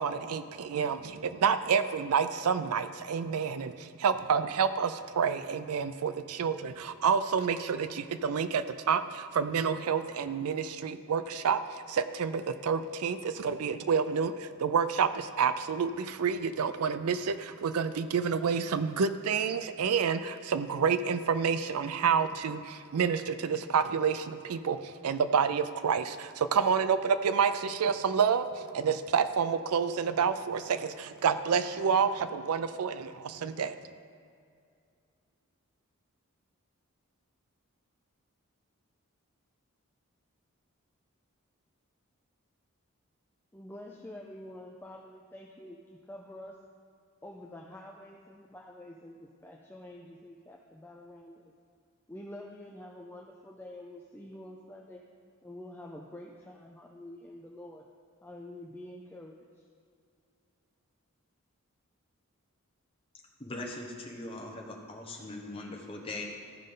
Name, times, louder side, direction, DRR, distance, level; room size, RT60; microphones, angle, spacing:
voice 1, 0.0-33.8, right 6 dB, 85° right, 12 dB, 0.4 m, -29 dB
voice 2, 43.5-46.5 47.2-51.5 52.1-55.0 55.4-57.8 58.2-59.4, left 1 dB, 10° left, -1 dB, 0.4 m, -47 dB
voice 3, 63.4-66.2, left 2 dB, 25° left, 0 dB, 1.1 m, -40 dB
15.0 x 5.2 x 3.8 m, 2.4 s
head